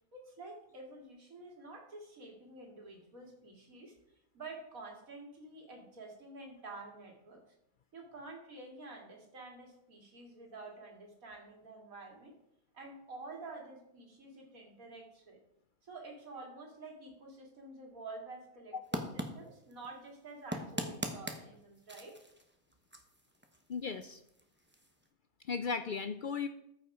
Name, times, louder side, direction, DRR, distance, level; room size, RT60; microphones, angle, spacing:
voice 1, 0.1-4.0 4.3-7.4 7.9-12.3 12.7-15.4 15.8-22.2, right 3 dB, 75° right, 0 dB, 2.7 m, -49 dB
sound 1, 18.8-25.1, equal, 10° right, 0.9 m, -43 dB
voice 2, 23.7-24.2 25.4-26.5, left 5 dB, 70° left, 10 dB, 0.5 m, -36 dB
14.0 x 5.7 x 5.0 m, 0.78 s
omnidirectional pair, 1.5 m